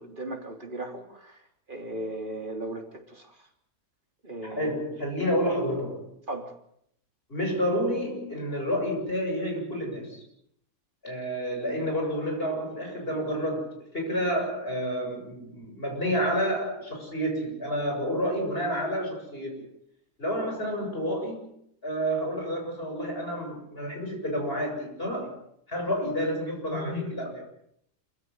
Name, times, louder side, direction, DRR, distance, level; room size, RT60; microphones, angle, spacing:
voice 1, 0.0-3.5 4.2-4.7 5.2-5.4 6.3-6.5 26.0-26.1, right 1 dB, 30° right, 3 dB, 3.7 m, -37 dB
voice 2, 4.6-6.1 7.3-10.2 11.0-19.6 20.2-21.5 21.8-25.3 25.7-27.5, equal, 35° left, 1 dB, 7.8 m, -29 dB
27.0 x 16.0 x 9.6 m, 0.73 s
omnidirectional pair, 1.7 m